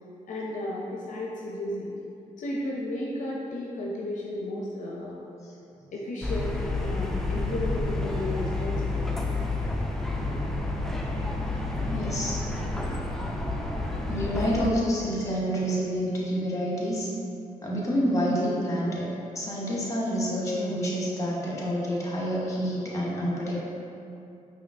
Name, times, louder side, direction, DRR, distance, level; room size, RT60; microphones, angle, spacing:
voice 1, 0.3-2.0 2.4-5.3 5.9-9.1, left 1 dB, 60° left, -3 dB, 0.5 m, -33 dB
sound 1, 6.2-14.7, left 2 dB, 5° left, 0.4 m, -29 dB
voice 2, 11.9-12.4 14.1-17.1 17.6-19.1 19.3-23.6, equal, 20° left, -5 dB, 1.2 m, -28 dB
5.1 x 2.7 x 2.5 m, 2.7 s
cardioid pair, 55°, 14 cm